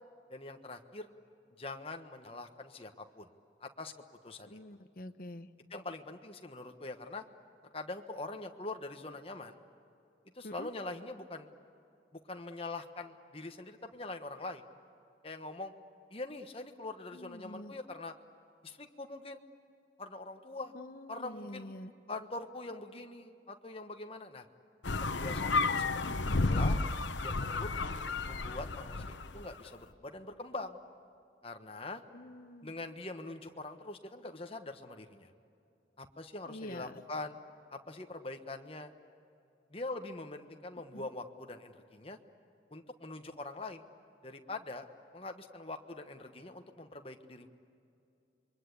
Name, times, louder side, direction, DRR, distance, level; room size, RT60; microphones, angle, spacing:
voice 1, 0.3-1.1 1.6-3.3 3.6-3.9 4.2-4.6 5.7-7.2 7.7-9.6 10.3-11.5 12.1-14.6 15.2-15.7 16.1-18.1 18.6-19.4 20.0-20.7 21.1-21.7 22.1-24.5 25.0-26.0 26.4-26.8 27.2-27.9 28.3-30.8 31.4-32.0 32.6-35.3 36.0-37.4 37.7-38.9 39.7-42.2 42.7-43.8 44.2-44.9 45.1-47.5, left 2 dB, 30° left, 5 dB, 1.3 m, -43 dB
voice 2, 4.4-5.5 10.4-10.7 17.1-17.7 20.7-21.9 26.0-26.5 32.1-32.7 36.5-37.0 40.9-41.1, left 1 dB, 50° left, 10 dB, 0.9 m, -46 dB
sound 1, 24.8-29.4, left 3 dB, 85° left, 1.1 m, -32 dB
27.5 x 23.0 x 8.4 m, 2.7 s
head